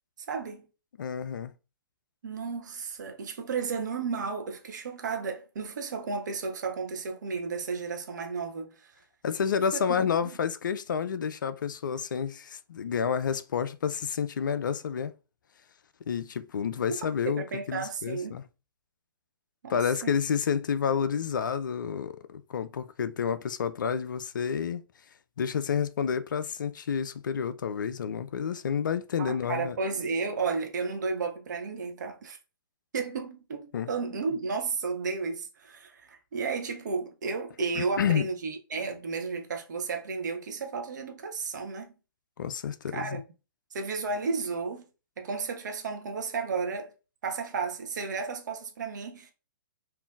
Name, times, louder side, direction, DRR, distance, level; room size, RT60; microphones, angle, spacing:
voice 1, 0.3-0.6 2.2-8.9 9.7-10.0 10.2-10.4 17.3-18.4 19.6-20.3 29.2-32.4 32.9-41.9 42.9-43.2 43.7-44.8 45.2-46.9 47.2-49.3, right 4 dB, 55° right, 0.7 m, -33 dB
voice 2, 1.0-1.5 9.2-15.1 16.1-18.4 19.7-24.8 25.4-29.8 33.7-33.9 37.8-38.3 42.4-43.2, left 7 dB, 60° left, 0.4 m, -29 dB
3.6 x 2.5 x 2.4 m
figure-of-eight pair, 120°, 11 cm